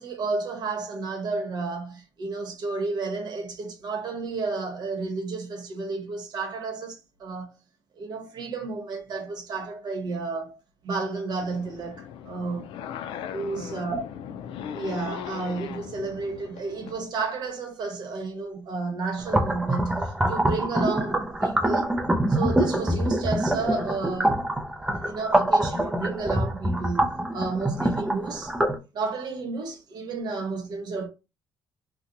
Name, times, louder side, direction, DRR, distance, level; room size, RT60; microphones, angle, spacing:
voice 1, 0.0-7.5 8.0-12.7 13.3-14.0 14.7-22.0 22.3-24.4 24.8-28.5 28.9-31.1, right 4 dB, 55° right, 1.0 m, -32 dB
sound 1, 11.4-17.0, left 9 dB, 85° left, 0.4 m, -38 dB
sound 2, 19.2-28.8, right 1 dB, 10° right, 0.5 m, -25 dB
2.7 x 2.2 x 3.8 m
cardioid pair, 135°, 9 cm